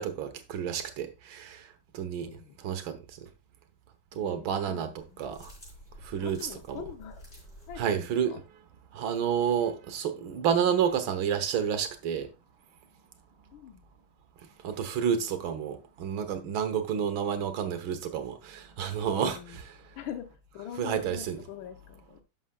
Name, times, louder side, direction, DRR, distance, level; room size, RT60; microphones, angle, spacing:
voice 1, 0.0-3.3 4.1-4.9 5.2-5.5 6.0-6.8 7.8-8.3 8.9-12.3 14.6-19.7 20.8-21.4, right 8 dB, 80° right, 1.9 m, -30 dB
voice 2, 2.2-2.6 4.1-5.3 6.2-7.2 7.7-8.4 13.5-13.9 19.1-19.6 20.0-22.2, left 9 dB, 80° left, 1.6 m, -43 dB
sound 1, 5.0-7.9, equal, 25° left, 4.9 m, -50 dB
11.0 x 7.1 x 2.3 m
omnidirectional pair, 2.2 m